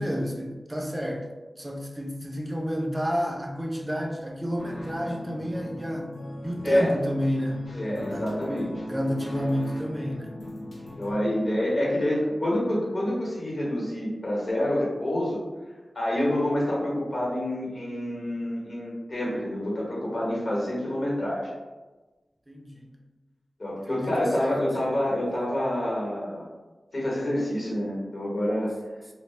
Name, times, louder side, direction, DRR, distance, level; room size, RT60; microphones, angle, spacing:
voice 1, 0.0-1.3 1.6-6.1 6.4-7.8 8.1-8.4 8.9-10.4 22.5-22.9 23.9-24.9, equal, 20° right, 0 dB, 0.3 m, -30 dB
sound 1, 4.6-11.1, left 1 dB, 75° left, 0.5 m, -38 dB
voice 2, 7.7-8.8 10.8-15.4 15.9-21.5 23.6-26.5 26.9-28.7, left 1 dB, 60° left, -5 dB, 1.0 m, -27 dB
2.2 x 2.1 x 3.1 m, 1.2 s
wide cardioid pair, 90°, 0 cm